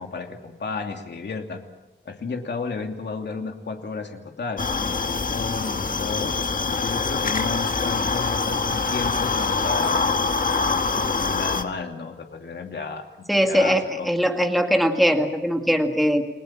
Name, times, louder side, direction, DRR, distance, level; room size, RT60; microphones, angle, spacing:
voice 1, 0.0-1.6 2.0-6.4 6.8-10.2 10.6-14.1, left 4 dB, 65° left, 3 dB, 2.7 m, -33 dB
sound 1, 4.6-11.6, left 4 dB, 45° left, 1.5 m, -24 dB
voice 2, 13.3-16.3, equal, ahead, 4 dB, 2.0 m, -21 dB
30.0 x 20.0 x 7.5 m, 1.1 s
wide cardioid pair, 160°, 19 cm